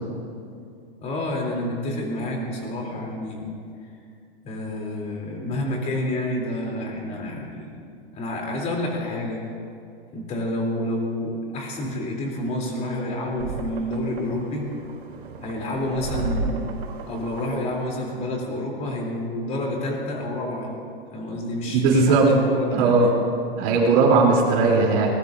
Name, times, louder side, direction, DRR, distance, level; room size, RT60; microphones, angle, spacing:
voice 1, 1.0-3.5 3.8-3.9 4.4-7.8 8.1-9.4 10.1-14.7 15.4-16.6 17.1-20.7 21.1-23.1, left 1 dB, 25° left, -1 dB, 3.6 m, -29 dB
sound 1, 13.4-18.4, right 3 dB, 75° right, 4.4 m, -34 dB
voice 2, 21.7-22.3 22.7-23.1 23.6-25.1, right 4 dB, 40° right, -1 dB, 3.6 m, -18 dB
24.0 x 20.0 x 2.8 m, 2.4 s
supercardioid pair, 155°, 30 cm